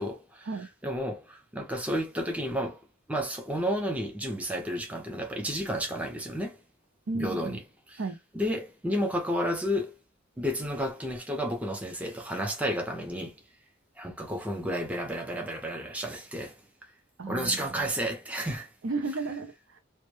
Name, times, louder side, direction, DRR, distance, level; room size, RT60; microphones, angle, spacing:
voice 1, 0.0-0.5 0.8-2.8 3.1-6.6 7.1-7.6 7.9-8.0 8.3-10.0 10.4-13.3 14.0-16.6 17.3-18.7, equal, 5° right, 0.4 m, -31 dB
voice 2, 7.1-7.6 8.0-8.2 17.2-17.9 18.8-19.8, right 3 dB, 85° right, 0.6 m, -34 dB
2.1 x 2.1 x 3.0 m
head